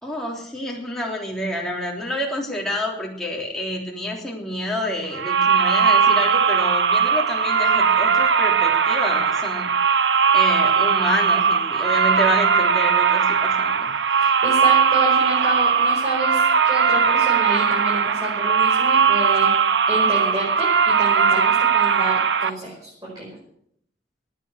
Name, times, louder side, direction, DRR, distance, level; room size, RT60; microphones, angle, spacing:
voice 1, 0.0-13.9, left 1 dB, ahead, -3 dB, 3.4 m, -28 dB
sound 1, 5.1-22.5, right 6 dB, 85° right, 0.8 m, -19 dB
voice 2, 14.1-19.5 19.9-23.4, right 2 dB, 20° right, -6 dB, 5.7 m, -29 dB
15.5 x 9.5 x 8.1 m, 0.70 s
head